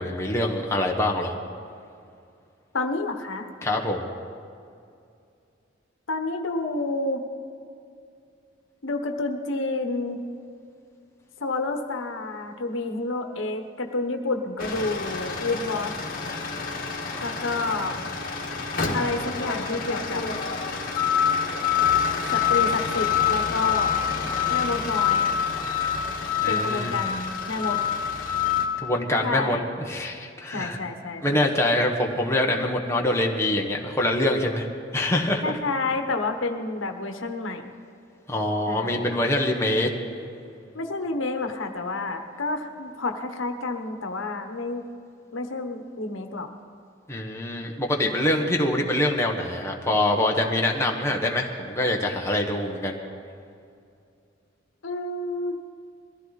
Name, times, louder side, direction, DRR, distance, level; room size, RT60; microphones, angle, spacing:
voice 1, 0.0-1.3 3.6-4.1 26.4-26.9 28.8-29.6 29.9-30.8 31.2-34.7 34.9-35.5 38.3-39.9 47.1-53.0, left 1 dB, 15° left, 0 dB, 1.3 m, -24 dB
voice 2, 2.7-3.5 6.1-7.2 8.8-10.2 11.4-15.9 17.2-18.0 18.9-20.2 22.3-23.9 24.5-25.3 26.5-27.8 29.2-29.6 30.5-31.8 35.4-37.7 38.7-39.1 40.7-44.8 45.3-46.5 54.8-55.6, left 3 dB, 85° left, 5 dB, 1.1 m, -29 dB
sound 1, 14.6-28.6, left 7 dB, 50° left, 1.8 m, -26 dB
21.5 x 15.0 x 4.1 m, 2.5 s
head